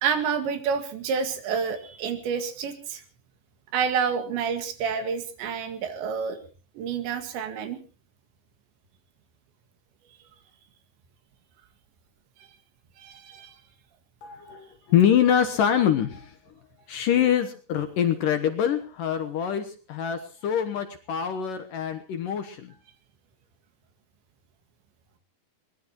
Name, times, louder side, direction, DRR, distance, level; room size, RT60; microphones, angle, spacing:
voice 1, 0.0-3.0 3.7-6.4 6.8-7.8 13.0-13.6, right 6 dB, 80° right, 8 dB, 4.2 m, -28 dB
voice 2, 14.2-16.3 16.9-22.7, left 9 dB, 65° left, 8 dB, 2.3 m, -24 dB
22.5 x 20.0 x 3.0 m, 0.37 s
omnidirectional pair, 5.1 m